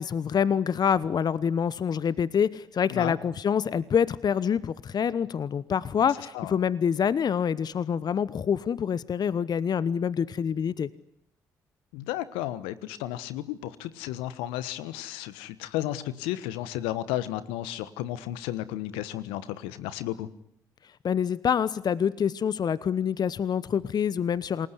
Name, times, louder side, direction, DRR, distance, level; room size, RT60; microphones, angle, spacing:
voice 1, 0.0-10.9 21.0-24.7, left 7 dB, 50° left, 19 dB, 1.0 m, -26 dB
voice 2, 11.9-20.3, left 14 dB, 80° left, 16 dB, 1.3 m, -33 dB
29.0 x 20.0 x 9.8 m, 0.72 s
hypercardioid pair, 45°, 9 cm